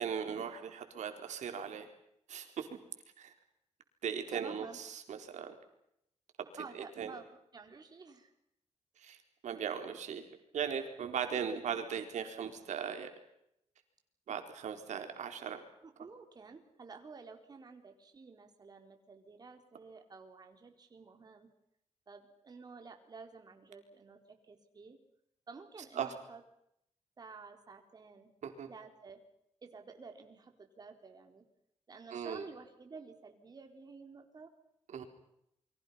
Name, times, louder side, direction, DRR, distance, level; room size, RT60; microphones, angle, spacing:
voice 1, 0.0-1.9 2.3-2.7 3.2-3.3 4.0-5.5 6.7-7.1 9.0-9.2 9.4-10.3 10.5-13.1 14.3-15.6 26.0-26.1 28.4-28.7 32.1-32.5 34.9-35.0, right 7 dB, 80° right, 6 dB, 4.2 m, -38 dB
voice 2, 4.3-4.8 6.6-8.3 15.8-21.5 22.1-24.2 24.5-25.0 25.5-26.4 27.2-28.3 28.7-29.2 29.6-31.4 31.9-34.5, right 4 dB, 35° right, 4 dB, 4.2 m, -51 dB
29.0 x 24.5 x 5.8 m, 0.77 s
wide cardioid pair, 150°, 12 cm